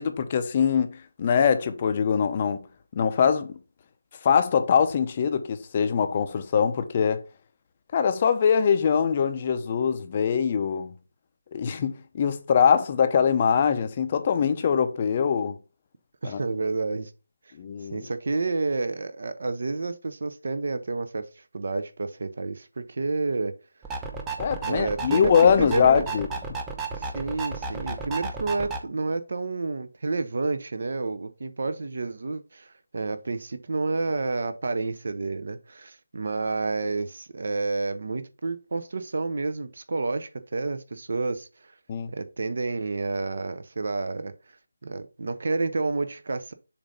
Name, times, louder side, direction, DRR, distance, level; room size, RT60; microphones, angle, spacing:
voice 1, 0.0-2.6 3.0-3.5 4.2-7.2 7.9-10.9 11.5-15.6 16.2-16.4 17.6-18.0 24.4-26.3 41.9-42.1, left 7 dB, 30° left, 0.6 m, -23 dB
voice 2, 16.2-17.1 17.9-23.5 24.7-26.1 26.9-41.7 42.1-44.3 44.8-46.5, right 3 dB, 60° right, 0.7 m, -30 dB
sound 1, 23.8-28.8, right 4 dB, 10° right, 0.7 m, -33 dB
7.0 x 2.6 x 5.3 m
figure-of-eight pair, 165°, 0 cm